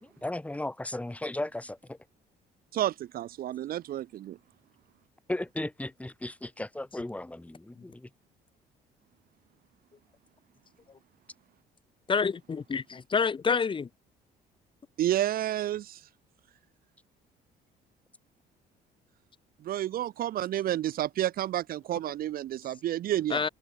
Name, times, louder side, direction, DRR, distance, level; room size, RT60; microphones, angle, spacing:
voice 1, 0.0-2.0 5.3-8.1, left 1 dB, 10° left, 2.4 m, -36 dB
voice 2, 2.7-4.4 15.0-16.0 19.6-23.5, right 12 dB, 60° right, 1.0 m, -30 dB
voice 3, 12.1-13.9 23.3-23.5, left 5 dB, 30° left, 1.9 m, -28 dB
cardioid pair, 110°, 17 cm